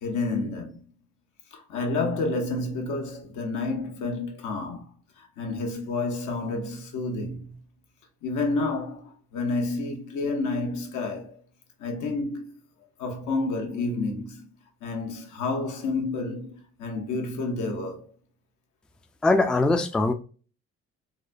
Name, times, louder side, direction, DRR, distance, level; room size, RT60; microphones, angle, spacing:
voice 1, 0.0-0.8 1.5-4.8 5.2-7.5 8.2-11.4 11.8-12.5 13.0-14.4 14.8-18.1, left 3 dB, 85° left, 0.9 m, -30 dB
voice 2, 19.2-20.1, left 2 dB, 5° left, 0.3 m, -21 dB
3.9 x 2.2 x 2.4 m
cardioid pair, 90°, 30 cm